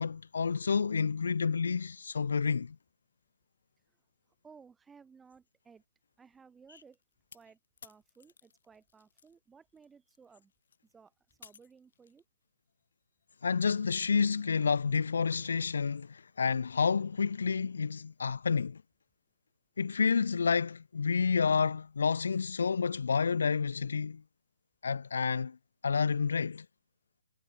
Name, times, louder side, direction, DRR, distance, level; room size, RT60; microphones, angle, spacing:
voice 1, 0.0-2.8 13.4-18.8 19.8-24.2 24.8-25.6 25.8-26.6, left 5 dB, 75° left, 0.4 m, -29 dB
voice 2, 4.4-5.8 6.2-7.0 7.3-10.5 10.8-11.1 11.4-12.2, right 5 dB, 5° right, 2.9 m, -58 dB
sound 1, 6.8-9.4 9.7-12.2, left 7 dB, 55° left, 5.2 m, -58 dB
hypercardioid pair, 170°, 0 cm